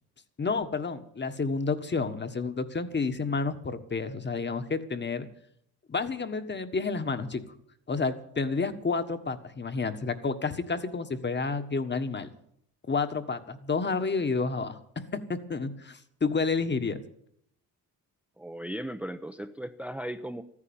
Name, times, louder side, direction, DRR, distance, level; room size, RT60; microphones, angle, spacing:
voice 1, 0.4-5.3 5.9-7.4 7.9-12.3 12.9-17.0, left 4 dB, 30° left, 9 dB, 1.4 m, -30 dB
voice 2, 18.4-20.4, right 1 dB, 5° right, 7 dB, 0.7 m, -37 dB
14.0 x 9.9 x 8.8 m, 0.70 s
cardioid pair, 95°, 36 cm